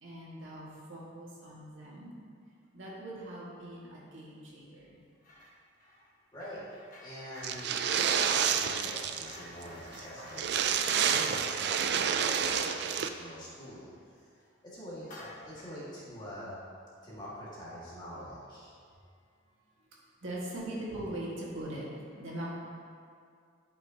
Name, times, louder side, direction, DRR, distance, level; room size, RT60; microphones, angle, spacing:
voice 1, 0.0-2.1 2.7-5.0 10.2-10.3 10.6-11.1 20.2-21.9 22.2-22.6, right 1 dB, 75° right, -6 dB, 2.0 m, -41 dB
sound 1, 5.2-5.5 5.8-14.0 14.3-14.5 15.0-15.8, left 1 dB, 40° left, 1.7 m, -51 dB
voice 2, 6.3-6.7 7.0-7.7 8.4-10.4 10.8-14.3 14.6-16.6 17.0-18.7, equal, 20° left, -8 dB, 1.9 m, -45 dB
sound 2, 7.4-9.4 9.6-9.7 10.0-10.1 10.3-13.1, right 7 dB, 55° right, 0.4 m, -29 dB
11.5 x 5.6 x 2.9 m, 2.3 s
head